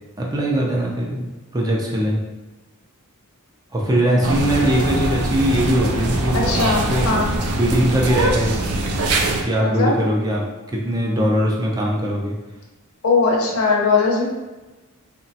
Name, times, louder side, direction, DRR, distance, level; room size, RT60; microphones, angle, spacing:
voice 1, 0.2-1.2 1.5-2.2 3.7-7.1 7.5-8.6 9.4-10.5 10.7-12.4, right 1 dB, 20° right, -2 dB, 0.4 m, -20 dB
sound 1, 4.2-9.4, right 2 dB, 85° right, 0.4 m, -22 dB
voice 2, 6.3-7.4 9.6-10.0 13.0-14.3, left 4 dB, 70° left, -1 dB, 0.7 m, -19 dB
2.9 x 2.2 x 2.7 m, 1.1 s
head